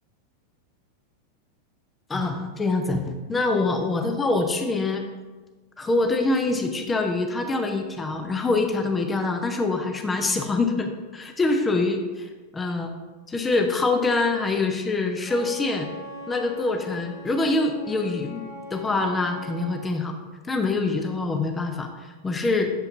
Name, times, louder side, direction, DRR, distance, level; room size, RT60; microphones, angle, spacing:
voice 1, 2.1-5.0 5.8-12.9 13.3-15.9 16.3-20.1 20.4-22.7, left 3 dB, 15° left, 5 dB, 0.6 m, -25 dB
Wind instrument woodwind instrument, 15.3-19.9, left 2 dB, 40° left, 1.6 m, -41 dB
8.0 x 7.1 x 2.6 m, 1.3 s
figure-of-eight pair, 90°, 0 cm